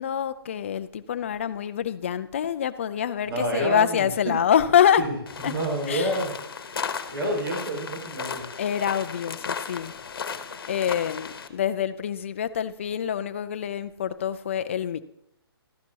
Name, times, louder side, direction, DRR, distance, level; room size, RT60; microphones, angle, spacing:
voice 1, 0.0-5.0 5.4-5.5 5.9-6.1 8.6-9.9 10.7-15.0, left 9 dB, 30° left, 0.4 m, -25 dB
voice 2, 3.2-4.1 5.0-5.1 5.4-8.4, right 1 dB, 65° right, 5.1 m, -29 dB
sound 1, 5.3-11.5, left 6 dB, 65° left, 1.1 m, -35 dB
13.5 x 10.5 x 2.9 m
hypercardioid pair, 170°, 13 cm